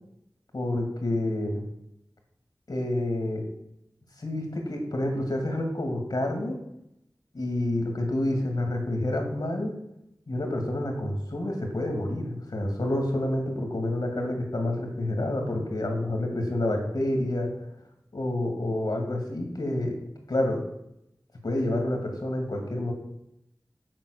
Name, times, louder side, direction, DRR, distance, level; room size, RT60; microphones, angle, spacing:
voice 1, 0.5-1.6 2.7-3.4 4.2-6.6 7.3-9.7 10.3-17.5 18.1-20.0 20.3-20.6 21.4-22.9, left 1 dB, 75° left, 3 dB, 2.2 m, -28 dB
7.5 x 5.1 x 6.5 m, 0.81 s
wide cardioid pair, 45°, 7 cm